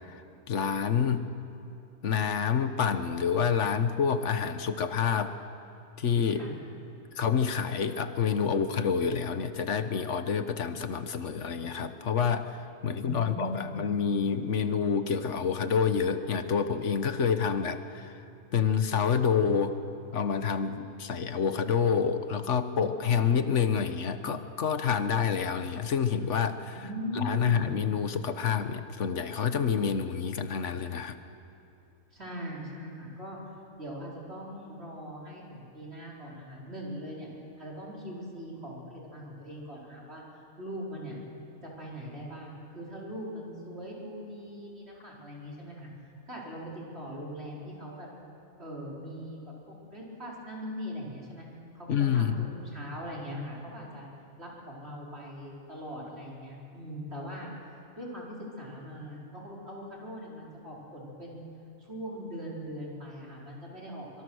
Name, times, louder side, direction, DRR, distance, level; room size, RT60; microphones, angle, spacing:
voice 1, 0.5-1.3 2.0-5.4 6.0-6.4 7.1-18.2 18.5-19.8 20.1-26.8 27.1-31.2 51.9-52.5, left 6 dB, 60° left, 10 dB, 1.4 m, -28 dB
voice 2, 12.9-13.8 26.7-27.7 32.1-33.4 33.8-37.3 37.6-40.2 40.6-41.2 41.6-48.1 48.6-49.4 49.7-51.5 51.7-54.1 54.4-57.5 58.0-61.5 61.8-64.2, equal, 50° right, -4 dB, 4.9 m, -41 dB
25.0 x 23.5 x 6.3 m, 2.7 s
omnidirectional pair, 1.4 m